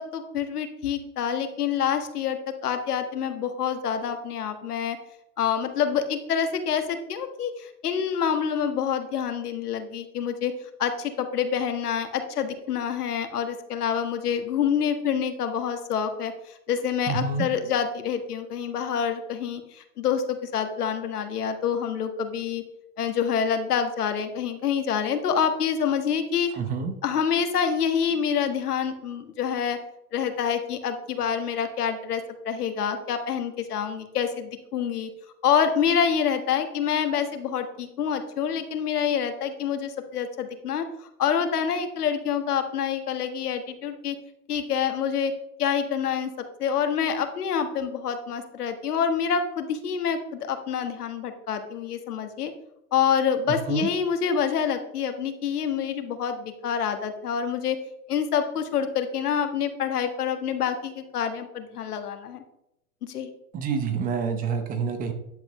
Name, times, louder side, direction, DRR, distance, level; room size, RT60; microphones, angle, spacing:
voice 1, 0.0-5.0 5.4-10.5 10.8-16.3 16.7-22.6 23.0-26.5 27.0-29.8 30.1-35.1 35.4-40.9 41.2-44.2 44.5-45.3 45.6-46.3 46.6-52.5 52.9-57.8 58.1-62.4 63.0-63.3, left 7 dB, 90° left, 7 dB, 1.5 m, -27 dB
voice 2, 17.1-17.5 26.5-26.9 53.7-53.9 63.5-65.1, right 5 dB, 20° right, 7 dB, 0.8 m, -27 dB
10.5 x 7.6 x 3.1 m, 0.80 s
hypercardioid pair, 145°, 44 cm